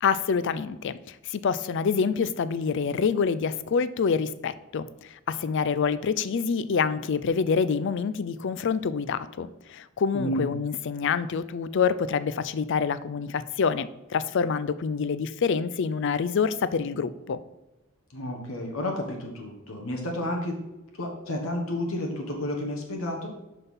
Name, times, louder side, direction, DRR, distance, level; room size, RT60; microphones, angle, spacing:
voice 1, 0.0-17.4, left 6 dB, 60° left, 15 dB, 0.4 m, -27 dB
voice 2, 10.1-10.6 18.1-20.6 21.0-23.3, left 1 dB, 85° left, 1 dB, 1.3 m, -31 dB
5.9 x 5.4 x 5.6 m, 1.0 s
head